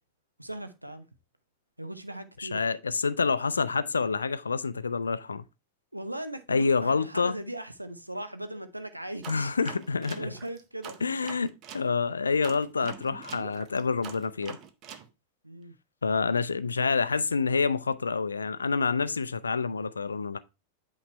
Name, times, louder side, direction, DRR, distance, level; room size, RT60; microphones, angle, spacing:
voice 1, 0.4-1.0 1.8-2.6 5.9-9.5 10.2-11.0 15.4-15.7, right 1 dB, 85° right, 0.7 m, -38 dB
voice 2, 2.4-5.4 6.5-7.4 9.3-10.3 11.0-14.6 16.0-20.4, left 4 dB, 75° left, 0.4 m, -27 dB
sound 1, 9.2-11.9 12.4-15.1, right 8 dB, 35° right, 0.7 m, -44 dB
8.4 x 3.1 x 4.2 m
figure-of-eight pair, 90°, 0 cm